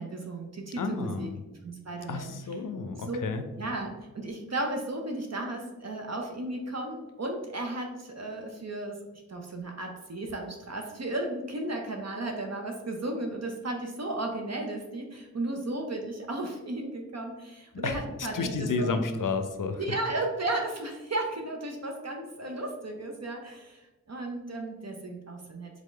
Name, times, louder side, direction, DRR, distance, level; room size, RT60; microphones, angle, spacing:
voice 1, 0.0-1.3 1.6-2.3 3.1-3.2 3.6-9.0 9.3-19.0 19.8-25.8, right 2 dB, 55° right, 2 dB, 0.7 m, -34 dB
voice 2, 0.8-1.4 2.1-3.5 17.7-18.0 18.3-19.8, left 4 dB, 85° left, 8 dB, 0.5 m, -31 dB
3.7 x 3.6 x 3.7 m, 1.1 s
wide cardioid pair, 50°, 31 cm